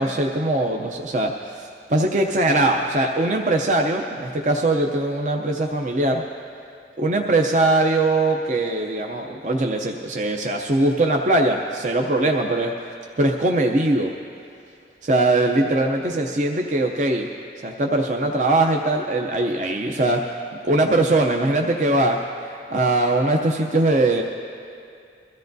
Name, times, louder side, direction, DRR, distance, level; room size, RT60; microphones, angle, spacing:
voice 1, 0.0-6.2 7.0-12.7 13.2-14.1 15.0-17.3 17.6-20.2 20.6-22.2 22.7-24.2, right 2 dB, 45° right, 2 dB, 0.6 m, -21 dB
22.5 x 14.0 x 2.7 m, 2.4 s
head